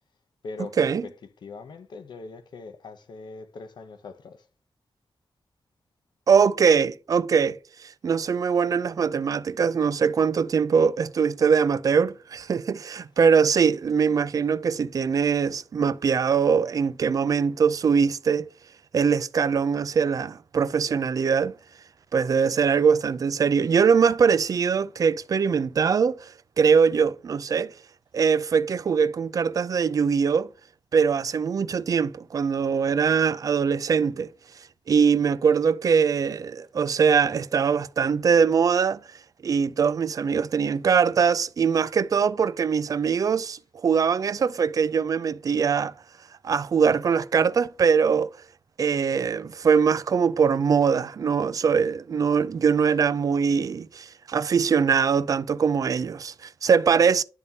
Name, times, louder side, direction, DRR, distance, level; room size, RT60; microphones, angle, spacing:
voice 1, 0.4-4.5, left 3 dB, 70° left, 0.7 m, -41 dB
voice 2, 6.3-18.5 18.9-21.5 22.1-27.7 28.1-30.5 30.9-34.3 34.9-39.0 39.4-45.9 46.4-48.3 48.8-57.2, right 6 dB, 50° right, 0.3 m, -22 dB
10.5 x 3.6 x 2.7 m
wide cardioid pair, 135°, 8 cm